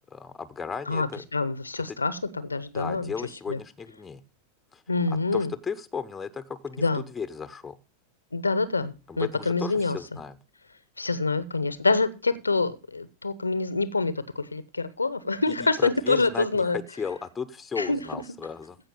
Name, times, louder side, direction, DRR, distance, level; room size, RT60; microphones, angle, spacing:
voice 1, 0.1-1.2 1.9-2.0 2.7-4.2 4.7-4.8 5.1-7.8 9.1-10.4 15.5-18.8, left 5 dB, 15° left, 1.0 m, -35 dB
voice 2, 0.9-3.1 3.5-3.6 4.9-5.5 6.8-7.0 8.3-10.0 11.0-16.8 17.8-18.0, left 3 dB, 80° left, 1.0 m, -26 dB
15.5 x 5.9 x 5.5 m
figure-of-eight pair, 90°, 0 cm